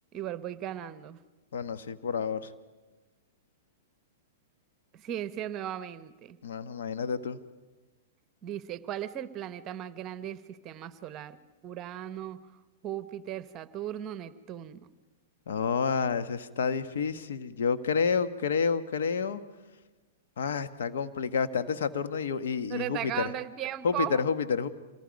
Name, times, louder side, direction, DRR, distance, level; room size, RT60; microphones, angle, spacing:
voice 1, 0.1-1.2 4.9-6.4 8.4-11.4 11.6-12.4 12.8-14.9 22.7-24.2, right 11 dB, 30° right, 14 dB, 0.9 m, -37 dB
voice 2, 1.5-2.5 6.4-7.4 15.5-19.4 20.4-23.3 23.8-24.7, left 6 dB, 75° left, 10 dB, 1.2 m, -29 dB
27.0 x 19.5 x 5.2 m, 1.2 s
hypercardioid pair, 125°, 0 cm